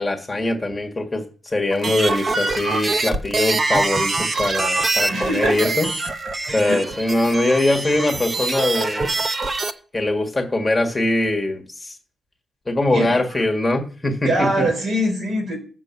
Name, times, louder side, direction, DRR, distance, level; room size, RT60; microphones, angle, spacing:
voice 1, 0.0-5.9 6.5-9.1 9.9-12.0 12.6-14.5, left 2 dB, 15° left, 1.7 m, -22 dB
sound 1, 1.7-9.7, right 3 dB, 30° right, 0.7 m, -24 dB
voice 2, 5.1-5.7 6.5-6.9 12.8-13.4 14.2-15.6, right 1 dB, 65° right, 3.6 m, -23 dB
7.6 x 6.5 x 7.7 m
cardioid pair, 140°, 0 cm